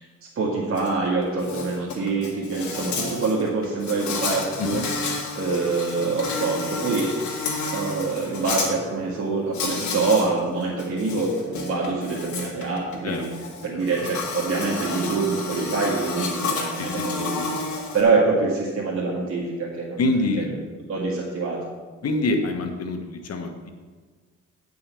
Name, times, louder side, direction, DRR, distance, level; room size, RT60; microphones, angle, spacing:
voice 1, 0.4-4.8 5.4-7.1 7.7-13.3 13.6-17.6 17.9-20.5 20.9-21.6, right 3 dB, 45° right, -5 dB, 2.0 m, -25 dB
Insect, 0.8-0.9 1.2-8.7 9.5-10.3 10.6-18.0, left 4 dB, 70° left, 2.1 m, -31 dB
voice 2, 16.8-17.5 20.0-20.5 22.0-23.7, left 2 dB, 55° left, 5 dB, 1.5 m, -26 dB
9.0 x 5.6 x 6.9 m, 1.5 s
cardioid pair, 90°, 30 cm